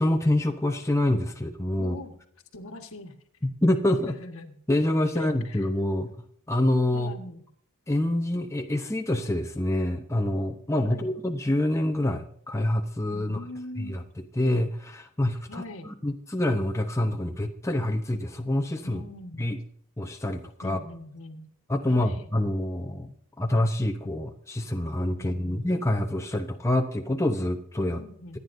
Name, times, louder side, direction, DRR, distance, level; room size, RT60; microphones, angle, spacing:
voice 1, 0.0-2.0 3.6-4.1 4.7-6.1 6.5-7.1 7.9-13.4 13.8-14.0 14.4-15.6 16.0-19.0 19.4-19.6 20.0-20.8 21.7-28.0, left 1 dB, 15° left, 4 dB, 0.8 m, -26 dB
voice 2, 1.8-2.2 2.5-3.2 3.8-4.6 5.1-5.7 6.9-7.4 10.8-11.2 13.1-14.1 15.5-16.0 18.8-19.5 20.6-21.5 21.9-22.3 25.2-25.7 28.0-28.4, left 2 dB, 65° left, 6 dB, 1.5 m, -42 dB
25.0 x 9.6 x 2.7 m, 0.65 s
head